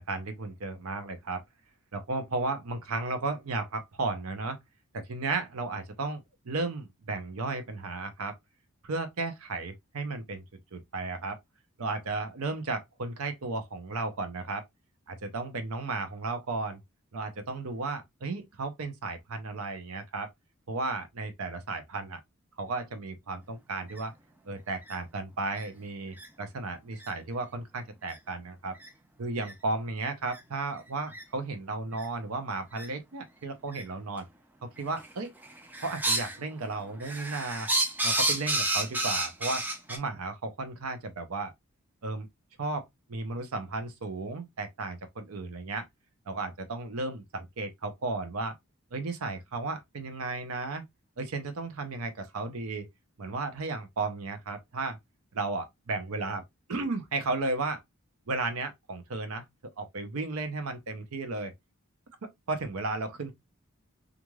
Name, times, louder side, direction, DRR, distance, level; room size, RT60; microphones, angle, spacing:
voice 1, 0.0-1.4 1.9-4.6 4.9-8.4 8.8-10.4 10.7-11.4 11.8-14.7 15.1-16.8 17.1-20.3 20.7-22.2 22.6-24.1 24.5-28.8 29.2-34.3 34.6-35.3 35.8-37.7 38.0-41.5 42.0-42.3 42.6-45.9 46.3-48.6 48.9-50.8 51.2-52.9 53.2-55.0 55.3-56.4 56.7-57.8 58.3-59.4 59.8-61.5 62.5-63.3, right 3 dB, 85° right, 0.6 m, -34 dB
sound 1, 23.9-24.0 24.8-25.0 25.6-25.7 26.2-26.3 27.0-27.1 28.1-28.2 28.8-28.9 29.4-29.5 30.3-30.4 31.1-31.2 31.9-32.1 32.8-32.9 33.7-33.8 34.8-35.1 35.4-36.4 36.7-40.0, right 2 dB, 10° right, 0.4 m, -30 dB
3.1 x 2.4 x 2.2 m
head